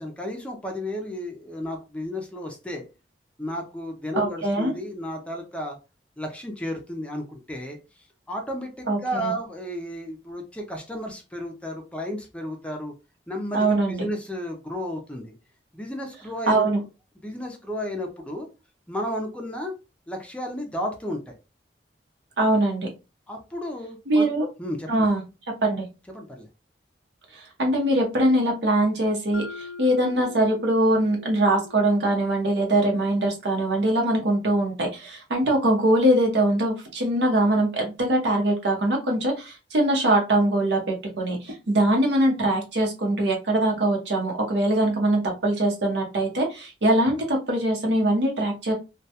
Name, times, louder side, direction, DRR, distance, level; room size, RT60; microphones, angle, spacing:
voice 1, 0.0-2.8 3.4-5.8 6.2-7.8 8.3-12.9 13.3-15.3 15.7-16.7 17.2-18.5 18.9-19.7 20.1-21.3 23.3-24.3 24.6-25.1 26.1-26.5, equal, 5° left, 2 dB, 0.4 m, -33 dB
voice 2, 4.2-4.7 8.9-9.3 13.5-14.0 16.5-16.8 22.4-22.9 24.1-24.5 24.9-25.2 25.6-25.8 27.3-48.7, right 1 dB, 75° right, 1 dB, 0.8 m, -22 dB
Mallet percussion, 29.3-33.4, left 4 dB, 85° left, 0.5 m, -43 dB
2.2 x 2.2 x 2.7 m, 0.29 s
head